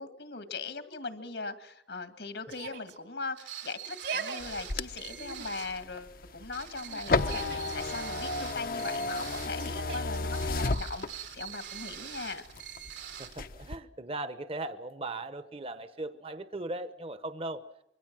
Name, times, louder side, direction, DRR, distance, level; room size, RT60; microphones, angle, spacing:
voice 1, 0.0-12.4, left 3 dB, 80° left, 2.2 m, -39 dB
Yell, 2.5-3.0 3.8-4.4 5.1-5.7 6.8-7.8 9.6-10.2, right 5 dB, 70° right, 2.8 m, -39 dB
sound 1, 3.4-5.8 6.5-9.6 10.3-13.4, right 10 dB, 90° right, 3.8 m, -44 dB
sound 2, 4.4-11.5 11.9-12.9 13.3-13.8, left 3 dB, 55° left, 0.8 m, -33 dB
voice 2, 13.2-17.7, right 2 dB, 35° right, 1.0 m, -38 dB
26.0 x 23.5 x 6.2 m
head